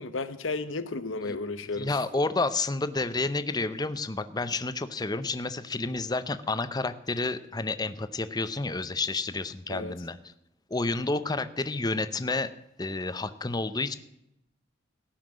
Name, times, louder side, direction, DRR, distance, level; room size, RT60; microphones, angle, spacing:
voice 1, 0.0-2.0 9.7-10.0, left 3 dB, 85° left, 1.0 m, -33 dB
voice 2, 1.8-10.2 10.7-12.5 12.8-13.9, left 3 dB, 20° left, 0.6 m, -30 dB
17.5 x 5.8 x 7.6 m
head